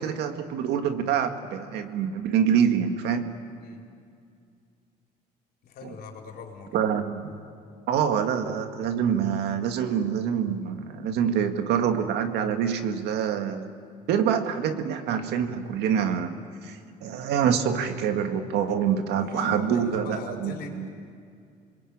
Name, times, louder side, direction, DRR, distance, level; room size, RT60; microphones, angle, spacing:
voice 1, 0.0-3.3 5.8-5.9 6.7-7.4 7.9-13.7 14.1-16.3 16.6-20.9, right 8 dB, 80° right, 7 dB, 1.9 m, -26 dB
voice 2, 5.6-6.8 19.2-20.8, left 5 dB, 70° left, 1 dB, 4.4 m, -41 dB
28.0 x 21.5 x 8.7 m, 2.3 s
cardioid pair, 110°, 17 cm